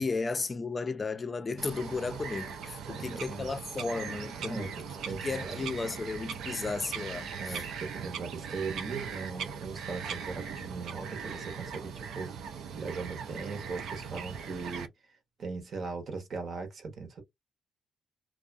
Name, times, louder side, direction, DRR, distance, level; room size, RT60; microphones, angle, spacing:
voice 1, 0.0-4.8 5.2-7.7, left 4 dB, 30° left, 0.4 m, -34 dB
Bird vocalization bird call bird song, 1.6-14.9, right 6 dB, 80° right, 0.5 m, -40 dB
voice 2, 2.9-3.5 4.4-5.7 7.4-12.5 12.7-14.9 15.4-17.2, right 4 dB, 50° right, 1.0 m, -39 dB
2.5 x 2.3 x 2.3 m
cardioid pair, 90°, 0 cm